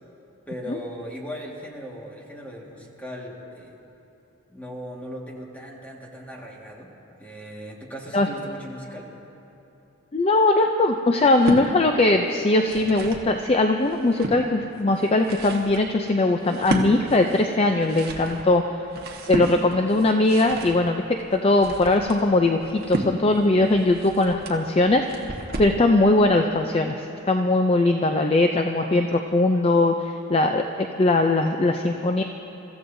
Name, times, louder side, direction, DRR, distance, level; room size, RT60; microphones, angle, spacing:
voice 1, 0.5-3.8 4.5-6.9 7.2-9.1, equal, 5° left, -2 dB, 1.7 m, -38 dB
voice 2, 10.1-18.6 19.2-21.0 21.3-25.1 25.6-32.2, left 2 dB, 25° left, 4 dB, 0.4 m, -20 dB
sound 1, 11.2-11.7 12.4-13.3 13.8-14.4 15.0-25.8, right 1 dB, 45° right, 1.3 m, -33 dB
29.5 x 15.0 x 2.7 m, 3.0 s
head